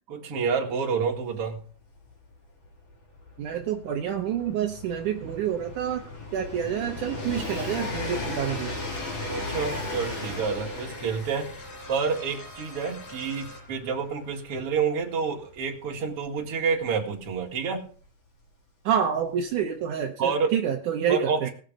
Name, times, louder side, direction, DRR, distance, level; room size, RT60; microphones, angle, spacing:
voice 1, 0.1-1.6 9.3-11.5 11.9-17.9 20.2-20.5 21.1-21.5, right 5 dB, 40° right, 0 dB, 2.5 m, -28 dB
Train, 1.1-1.2 1.3-18.0 18.9-19.0, left 2 dB, 30° left, 3.1 m, -37 dB
voice 2, 3.4-6.1 6.3-8.8 18.9-21.5, right 8 dB, 70° right, 2 dB, 1.9 m, -28 dB
sound 1, 7.2-13.6, left 2 dB, 85° left, 6.4 m, -45 dB
19.0 x 6.5 x 5.1 m, 0.42 s
omnidirectional pair, 4.9 m